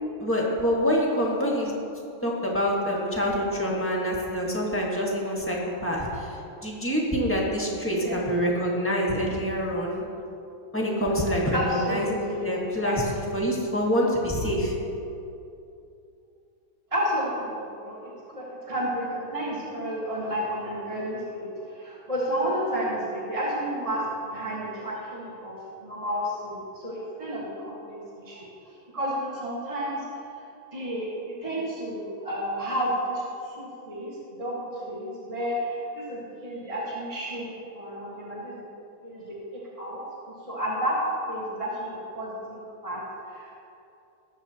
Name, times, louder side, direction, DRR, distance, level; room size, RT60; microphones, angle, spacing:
voice 1, 0.2-1.7 2.2-6.4 6.6-10.0 10.7-13.0 13.3-14.7, equal, 5° left, -3 dB, 1.4 m, -26 dB
voice 2, 8.0-8.3 11.5-12.5 12.8-13.0 16.9-28.5 28.9-30.1 30.7-31.1 31.4-37.4 37.7-38.6 39.0-40.0 40.4-41.0 41.3-43.6, equal, 15° right, -7 dB, 1.6 m, -31 dB
20.0 x 7.2 x 2.9 m, 2.7 s
omnidirectional pair, 2.3 m